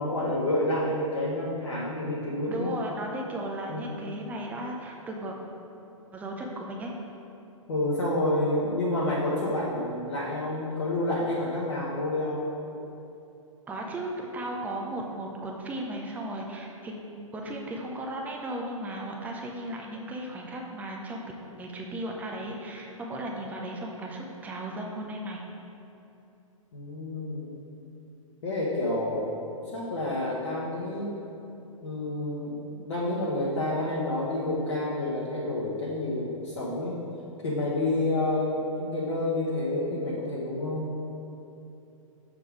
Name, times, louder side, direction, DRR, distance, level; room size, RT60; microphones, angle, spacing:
voice 1, 0.0-2.7 3.7-4.0 7.7-12.5 26.7-27.5 28.4-29.3 29.7-31.1 31.8-37.0 37.4-40.9, left 1 dB, 55° left, -6 dB, 1.0 m, -29 dB
voice 2, 2.5-5.4 6.1-6.9 13.7-21.2 21.6-25.4, right 1 dB, 10° right, 0 dB, 0.5 m, -36 dB
6.8 x 3.7 x 4.8 m, 2.8 s
figure-of-eight pair, 110°, 17 cm